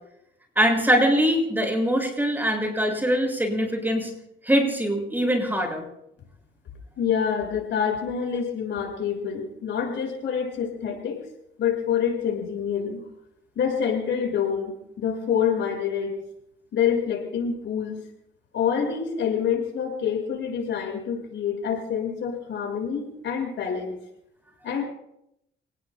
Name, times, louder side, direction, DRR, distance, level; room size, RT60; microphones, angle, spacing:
voice 1, 0.5-4.1 4.4-5.8, equal, 10° right, 1 dB, 6.5 m, -22 dB
voice 2, 7.0-11.2 11.6-13.0 13.6-16.2 16.7-18.0 18.5-24.0 24.6-24.8, left 7 dB, 70° left, 1 dB, 6.2 m, -26 dB
29.5 x 19.5 x 2.3 m, 0.80 s
cardioid pair, 90°, 20 cm